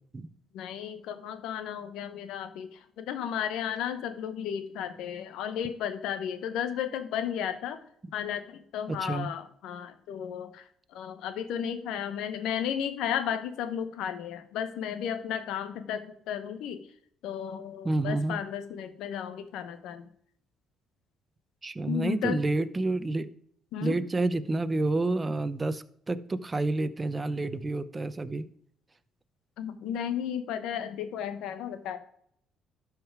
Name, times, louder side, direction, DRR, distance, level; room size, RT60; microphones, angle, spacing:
voice 1, 0.5-7.8 8.1-10.6 10.9-16.8 17.2-20.1 21.8-22.4 23.7-24.0 29.6-32.0, left 9 dB, 75° left, 10 dB, 1.1 m, -34 dB
voice 2, 8.9-9.3 17.8-18.4 21.6-23.3 23.8-28.5, right 2 dB, 25° right, 14 dB, 0.7 m, -29 dB
12.5 x 4.9 x 4.8 m, 0.66 s
supercardioid pair, 80°, 0 cm